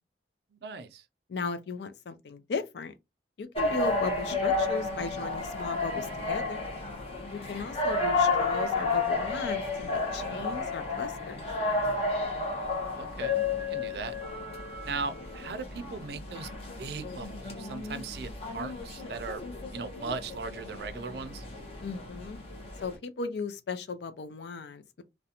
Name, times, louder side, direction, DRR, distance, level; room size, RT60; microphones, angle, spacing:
voice 1, 0.5-1.0 12.9-13.4 13.7-14.1 14.8-16.5 16.8-19.4 19.7-21.4, right 4 dB, 65° right, 0.4 m, -38 dB
voice 2, 1.3-2.9 3.4-6.6 7.3-11.4 21.8-22.4 22.8-25.0, left 4 dB, 75° left, 0.4 m, -36 dB
sound 1, 3.6-23.0, left 3 dB, 35° left, 0.6 m, -32 dB
2.4 x 2.1 x 2.7 m
head